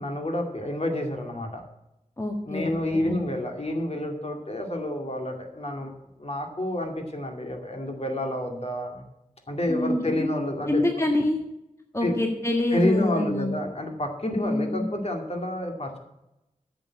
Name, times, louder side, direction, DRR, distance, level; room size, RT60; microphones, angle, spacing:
voice 1, 0.0-1.6 2.4-5.9 6.2-9.0 9.5-10.8 12.0-12.2 12.7-16.0, left 1 dB, 45° left, 3 dB, 2.4 m, -29 dB
voice 2, 2.2-3.2 9.7-10.3 10.7-11.4 11.9-13.5 14.3-14.9, left 1 dB, 20° left, 1 dB, 1.6 m, -26 dB
10.5 x 7.1 x 8.5 m, 0.88 s
wide cardioid pair, 70°, 14 cm